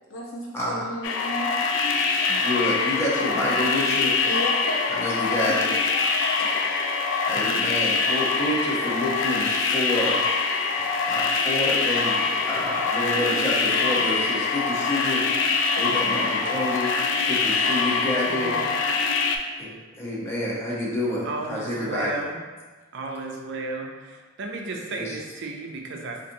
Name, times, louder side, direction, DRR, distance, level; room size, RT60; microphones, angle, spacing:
voice 1, 0.1-1.5 4.2-5.1 5.5-5.6 5.9-6.1 6.4-6.5 11.1-11.2, left 1 dB, 80° left, -4 dB, 0.9 m, -33 dB
sound 1, 1.0-19.4, left 4 dB, 65° left, 0.3 m, -24 dB
voice 2, 2.3-4.1 4.9-5.7 7.3-10.2 11.1-16.9 17.3-18.5 19.6-22.2 25.0-25.2, left 1 dB, 15° left, -6 dB, 0.8 m, -28 dB
voice 3, 18.2-18.8 21.2-22.4 22.9-26.2, right 3 dB, 65° right, 1 dB, 0.5 m, -34 dB
4.1 x 2.5 x 2.6 m, 1.3 s
head